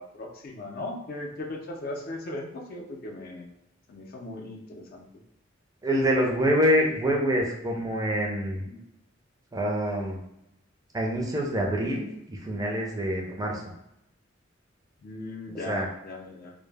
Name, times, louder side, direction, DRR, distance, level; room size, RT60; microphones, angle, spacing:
voice 1, 0.0-3.6 3.9-5.1 8.7-8.8 15.0-16.5, left 2 dB, 50° left, 1 dB, 0.4 m, -38 dB
voice 2, 5.8-8.6 9.5-10.2 10.9-13.7 15.7-15.9, equal, 20° right, -1 dB, 0.4 m, -26 dB
2.0 x 2.0 x 3.2 m, 0.82 s
head